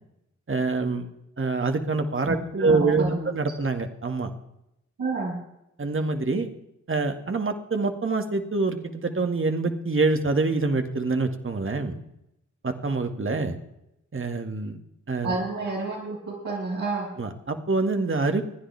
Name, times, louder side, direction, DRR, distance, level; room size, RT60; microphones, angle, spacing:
voice 1, 0.5-1.1 1.4-4.3 5.8-6.5 6.9-12.0 12.6-13.6 14.1-14.8 15.1-15.3 17.2-18.4, right 3 dB, 40° right, 6 dB, 2.2 m, -25 dB
voice 2, 2.3-3.3 5.0-5.3 15.2-17.1, right 3 dB, 80° right, -8 dB, 6.9 m, -30 dB
27.5 x 10.5 x 3.5 m, 0.82 s
supercardioid pair, 45°, 31 cm